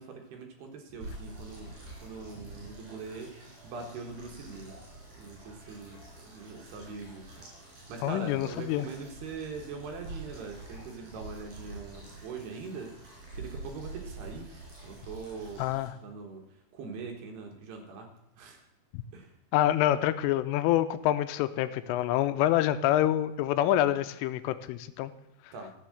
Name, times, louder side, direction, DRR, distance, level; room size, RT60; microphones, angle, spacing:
voice 1, 0.0-1.7 2.0-3.4 3.6-4.8 5.2-7.3 7.9-12.9 13.3-14.5 14.8-15.6 16.0-16.4 16.7-18.1 18.4-18.6 19.1-19.3 25.5-25.7, right 4 dB, 65° right, 3 dB, 3.2 m, -42 dB
sound 1, 1.0-15.9, right 2 dB, 30° right, 6.0 m, -47 dB
voice 2, 8.0-8.9 15.6-15.9 18.9-19.0 19.5-25.1 25.4-25.5, left 13 dB, 85° left, 12 dB, 3.1 m, -26 dB
14.5 x 7.5 x 7.8 m, 0.90 s
omnidirectional pair, 5.7 m